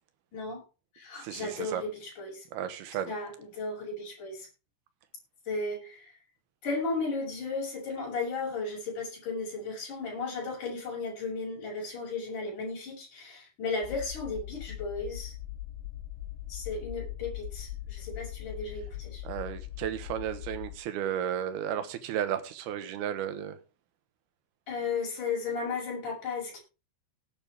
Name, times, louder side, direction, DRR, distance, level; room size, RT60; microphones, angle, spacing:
voice 1, 0.3-0.6 0.9-2.4 3.1-4.5 5.5-6.1 6.6-15.3 16.5-19.2 24.7-26.6, left 4 dB, 40° left, 8.1 m, -35 dB
voice 2, 1.2-1.8 2.5-3.1 19.2-23.6, right 10 dB, 70° right, 2.9 m, -33 dB
sound 1, 13.8-20.8, left 14 dB, 80° left, 3.2 m, -41 dB
18.0 x 9.3 x 3.5 m
omnidirectional pair, 5.3 m